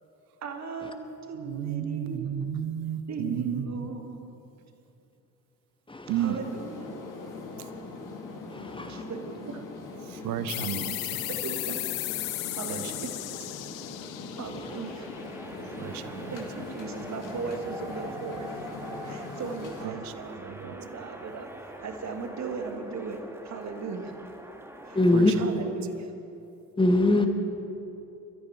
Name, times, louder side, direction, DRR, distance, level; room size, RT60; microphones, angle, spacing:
voice 1, 0.4-2.3 3.1-4.4 6.2-6.9 8.9-9.6 11.3-11.8 12.5-13.1 14.3-15.1 16.3-18.5 19.0-21.5 21.8-24.1 24.8-25.0 25.4-26.1, right 4 dB, 40° right, 5 dB, 1.8 m, -37 dB
voice 2, 1.4-3.9 6.1-6.4 10.1-11.2 12.7-12.8 15.8-16.3 19.8-20.1 20.4-20.8 25.1-25.2, right 10 dB, 55° right, 13 dB, 0.9 m, -33 dB
voice 3, 5.9-6.4 8.5-9.1 14.4-14.8 24.9-25.4 26.8-27.3, left 2 dB, 10° left, 6 dB, 1.5 m, -24 dB
sound 1, 6.4-19.8, left 3 dB, 50° left, 2.3 m, -41 dB
sound 2, 10.5-15.8, left 18 dB, 75° left, 0.5 m, -35 dB
sound 3, 14.6-25.2, right 1 dB, 5° right, 1.8 m, -44 dB
23.0 x 13.5 x 4.3 m, 2.8 s
figure-of-eight pair, 50°, 41 cm